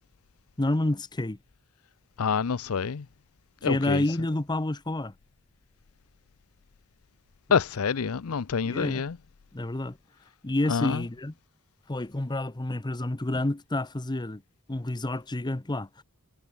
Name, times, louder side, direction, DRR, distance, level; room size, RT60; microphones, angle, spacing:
voice 1, 0.6-1.4 3.6-5.1 7.5-7.6 8.6-9.0 9.5-10.0 10.4-11.3 11.9-14.4 14.7-16.0, left 1 dB, 20° left, 0.8 m, -29 dB
voice 2, 2.2-3.0 3.6-4.0 7.5-9.2 10.7-11.0, left 6 dB, 70° left, 0.6 m, -27 dB
head